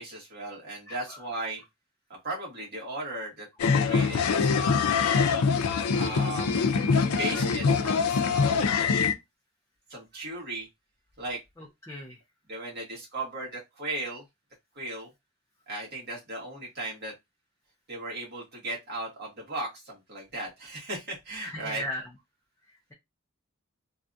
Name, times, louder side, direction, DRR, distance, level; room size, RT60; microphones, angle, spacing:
voice 1, 0.0-1.6 2.1-3.5 3.8-5.4 5.9-6.6 7.2-9.1 9.9-10.7 11.2-11.4 12.5-14.2 14.7-15.1 15.7-17.1 17.9-21.8, right 2 dB, 50° right, 1.6 m, -37 dB
sound 1, 3.6-9.1, left 5 dB, 90° left, 0.5 m, -24 dB
voice 2, 11.6-12.2 21.4-22.0, left 1 dB, 15° left, 0.4 m, -37 dB
3.2 x 2.4 x 2.6 m
head